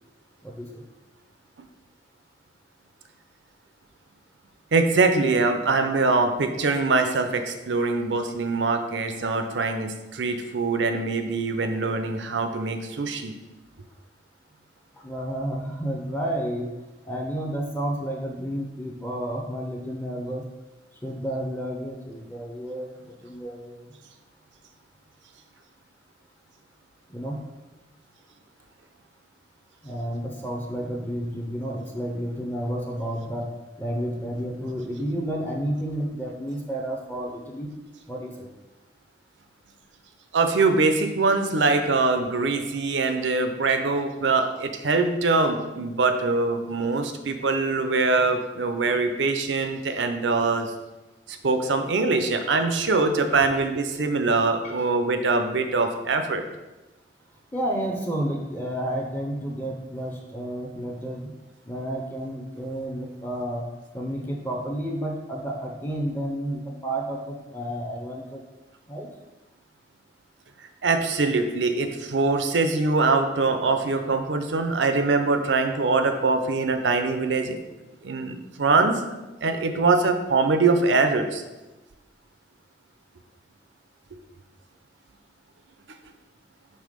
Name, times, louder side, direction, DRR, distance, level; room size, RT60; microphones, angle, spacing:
voice 1, 0.4-0.8 15.0-16.7 17.0-20.4 21.0-23.9 27.1-27.4 29.8-33.5 33.8-37.7 38.1-38.5 54.6-54.8 57.5-61.3 61.7-63.6 63.9-68.4 68.9-69.1, right 1 dB, 10° left, 0 dB, 0.6 m, -31 dB
voice 2, 4.7-13.3 40.3-50.7 51.3-56.4 70.8-77.6 78.0-79.1 79.4-81.4, right 3 dB, 90° right, 7 dB, 0.6 m, -23 dB
5.5 x 3.4 x 5.1 m, 1.1 s
head